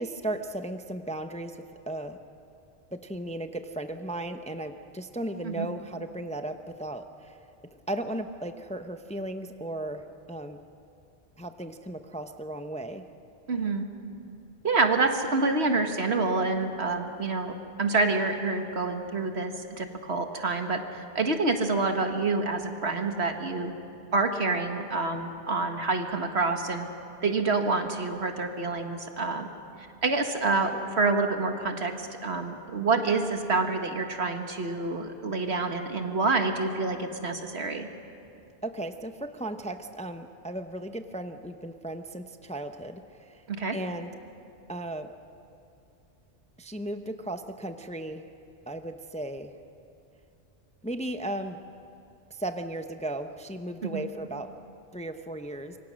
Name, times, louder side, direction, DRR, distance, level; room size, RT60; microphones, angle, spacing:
voice 1, 0.0-1.6 1.9-2.2 2.9-7.4 7.9-10.0 10.3-10.6 11.4-13.0 38.6-43.4 43.7-44.1 44.7-45.1 46.6-48.2 48.7-49.5 50.8-51.6 52.3-54.5 54.9-55.8, right 1 dB, 5° left, 7 dB, 0.7 m, -35 dB
voice 2, 13.5-13.8 14.6-23.7 24.1-26.9 27.2-29.5 30.0-37.9 43.5-43.8 53.9-54.0, right 3 dB, 75° right, 5 dB, 1.9 m, -27 dB
26.0 x 23.5 x 6.4 m, 2.6 s
omnidirectional pair, 1.1 m